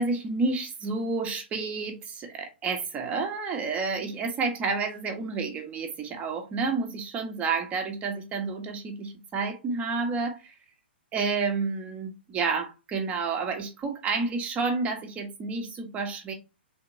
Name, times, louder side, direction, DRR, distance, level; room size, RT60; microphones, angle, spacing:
voice 1, 0.0-10.5 11.1-16.3, right 4 dB, 25° right, 1.1 m, -30 dB
3.6 x 2.8 x 4.3 m
hypercardioid pair, 120°, 6 cm